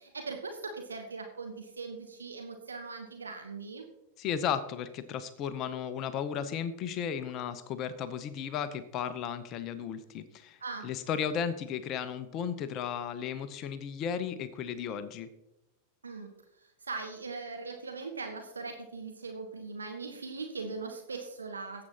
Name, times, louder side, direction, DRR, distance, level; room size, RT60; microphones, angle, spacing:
voice 1, 0.0-3.8 10.6-10.9 16.0-16.3 16.6-21.8, right 4 dB, 75° right, 5 dB, 1.0 m, -40 dB
voice 2, 4.2-15.3, left 8 dB, 35° left, 13 dB, 0.8 m, -35 dB
17.0 x 7.7 x 3.0 m, 0.87 s
figure-of-eight pair, 90°, 0 cm